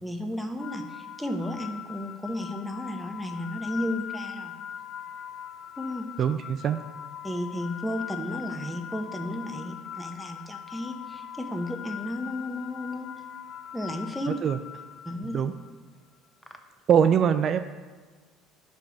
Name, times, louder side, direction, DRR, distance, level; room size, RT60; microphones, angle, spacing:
voice 1, 0.0-4.5 5.8-6.1 7.2-13.1 13.7-14.3 15.0-15.4, left 1 dB, ahead, 4 dB, 1.0 m, -33 dB
sound 1, 0.6-15.7, left 9 dB, 45° left, 0.3 m, -41 dB
voice 2, 6.2-6.8 14.3-14.6 15.3-15.5 16.9-17.6, right 8 dB, 45° right, 10 dB, 0.3 m, -22 dB
5.2 x 4.5 x 6.1 m, 1.5 s
hypercardioid pair, 70°, 0 cm